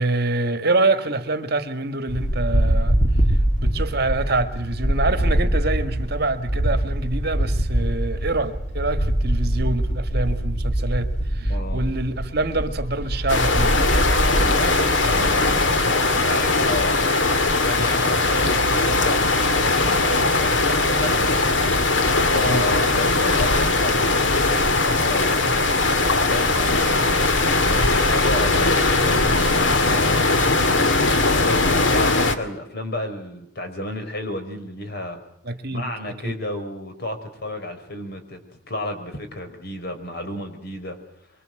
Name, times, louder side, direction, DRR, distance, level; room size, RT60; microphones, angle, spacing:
voice 1, 0.0-3.0 3.6-13.9 22.4-22.6 35.4-35.9 36.2-36.3, right 2 dB, 55° right, 1.9 m, -25 dB
sound 1, 2.1-17.2, right 1 dB, 40° left, 3.2 m, -24 dB
voice 2, 11.5-11.9 14.3-21.5 22.0-25.4 26.1-30.8 31.4-35.2 35.7-38.4 38.7-41.0, left 1 dB, 55° left, 5.3 m, -32 dB
sound 2, 13.3-32.4, left 3 dB, 75° left, 2.2 m, -20 dB
25.5 x 23.5 x 7.9 m
head